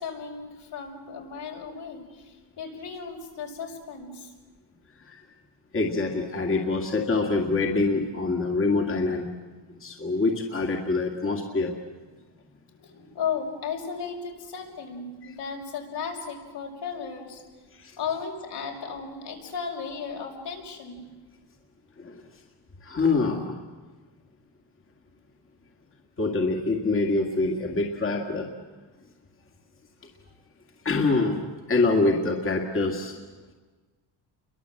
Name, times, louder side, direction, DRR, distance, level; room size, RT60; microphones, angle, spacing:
voice 1, 0.0-4.3 12.7-17.4 18.0-21.0, left 6 dB, 65° left, 1 dB, 6.0 m, -35 dB
voice 2, 5.7-9.3 9.7-11.7 15.2-15.3 17.7-18.0 22.0-22.2 22.8-23.6 26.2-28.5 30.8-33.2, left 3 dB, 30° left, 1 dB, 2.2 m, -25 dB
30.0 x 23.0 x 7.8 m, 1.3 s
cardioid pair, 155°, 44 cm